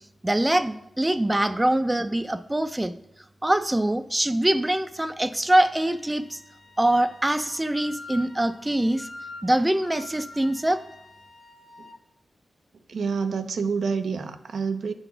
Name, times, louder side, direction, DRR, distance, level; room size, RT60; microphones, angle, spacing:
voice 1, 0.2-2.9 3.4-6.4 6.8-9.1 9.4-10.8, right 1 dB, 20° right, 11 dB, 0.5 m, -23 dB
Wind instrument woodwind instrument, 5.6-12.0, left 2 dB, 75° left, 1.2 m, -45 dB
voice 2, 12.9-14.9, right 5 dB, 80° right, 8 dB, 0.6 m, -28 dB
8.9 x 4.0 x 5.8 m, 0.82 s
cardioid pair, 45°, 0 cm